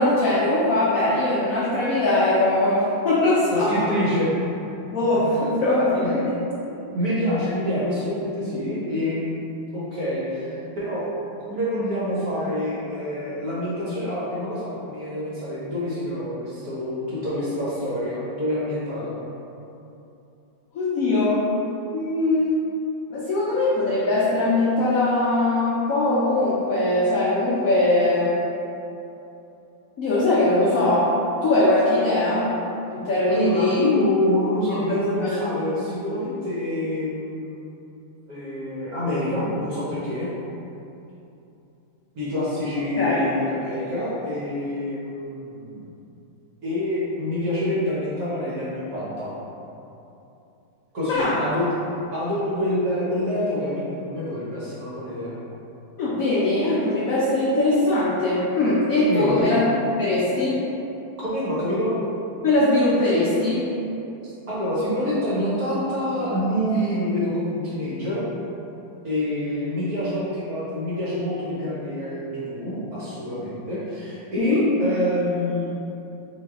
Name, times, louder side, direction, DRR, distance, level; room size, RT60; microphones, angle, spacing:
voice 1, 0.0-3.8 4.9-6.3 6.7-6.8 20.7-21.4 21.9-22.5 23.1-28.4 30.0-31.1 31.4-32.5 32.9-33.8 35.2-35.4 43.0-43.2 51.1-51.5 56.0-59.6 60.0-60.6 62.4-63.7 74.4-74.7, left 2 dB, 75° left, -8 dB, 0.7 m, -21 dB
voice 2, 3.5-4.3 6.0-6.1 6.9-11.1 11.5-19.2 33.3-37.6 38.3-40.3 42.1-45.9 46.6-49.3 50.9-51.7 52.1-55.4 59.1-59.4 61.2-61.9 64.2-68.2 69.0-75.7, left 1 dB, 60° right, -8 dB, 1.1 m, -26 dB
4.0 x 2.7 x 3.5 m, 2.8 s
omnidirectional pair, 2.3 m